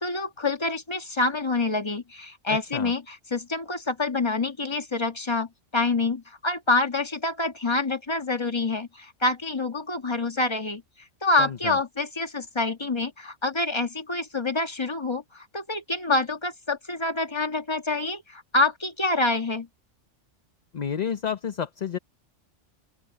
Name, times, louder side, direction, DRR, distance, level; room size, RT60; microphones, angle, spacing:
voice 1, 0.0-10.8 11.2-19.7, left 3 dB, 25° left, 1.5 m, -27 dB
voice 2, 2.5-2.9 11.4-11.8 20.7-22.0, left 7 dB, 40° left, 0.7 m, -30 dB
open air
omnidirectional pair, 1.3 m